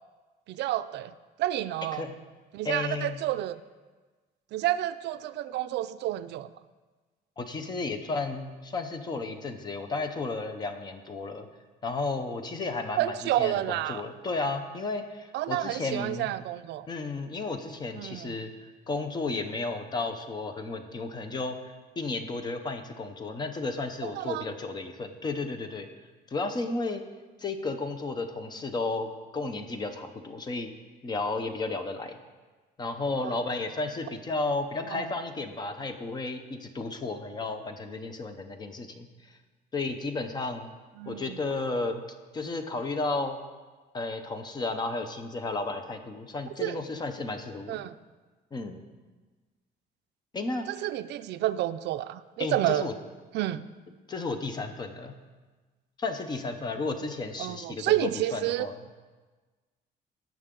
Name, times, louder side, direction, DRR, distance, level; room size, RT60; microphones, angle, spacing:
voice 1, 0.5-1.1 1.4-2.0 2.5-3.6 4.5-6.5 13.0-14.0 15.3-16.9 18.0-18.4 24.0-24.4 33.2-33.3 34.9-35.1 41.0-41.4 46.6-46.8 47.7-47.9 50.7-52.9 53.3-53.6 57.4-58.7, right 13 dB, 70° right, 13 dB, 0.4 m, -30 dB
voice 2, 2.6-3.2 7.4-11.5 11.8-16.3 16.9-25.9 26.3-27.0 27.4-30.7 31.0-32.2 32.8-39.4 39.7-40.7 41.1-42.1 42.3-43.4 43.9-47.9 48.5-48.8 50.3-50.7 52.4-52.9 54.1-55.2 56.0-58.8, left 3 dB, 25° left, 7 dB, 0.7 m, -33 dB
17.5 x 6.2 x 3.7 m, 1.3 s
cardioid pair, 175°, 18 cm